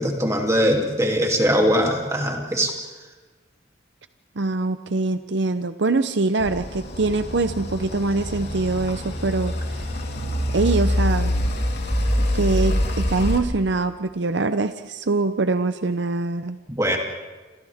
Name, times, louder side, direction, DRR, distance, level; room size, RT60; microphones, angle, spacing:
voice 1, 0.0-2.7 16.7-17.0, equal, 15° right, 1 dB, 2.9 m, -21 dB
voice 2, 4.4-9.9 10.5-11.3 12.3-16.6, right 3 dB, 60° right, 10 dB, 0.7 m, -23 dB
sound 1, 6.4-13.4, equal, 55° left, 3.5 m, -25 dB
29.0 x 27.0 x 3.6 m, 1.3 s
head